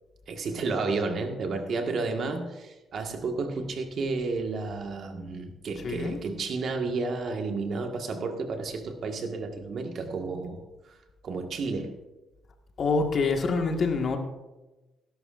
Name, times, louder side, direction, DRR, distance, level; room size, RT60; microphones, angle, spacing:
voice 1, 0.3-10.6 10.9-11.0 11.2-12.0, right 3 dB, 60° right, 4 dB, 1.7 m, -31 dB
voice 2, 5.8-6.2 12.8-14.2, left 4 dB, 50° left, 3 dB, 1.7 m, -26 dB
18.5 x 11.0 x 2.6 m, 1.1 s
cardioid pair, 90°, 0 cm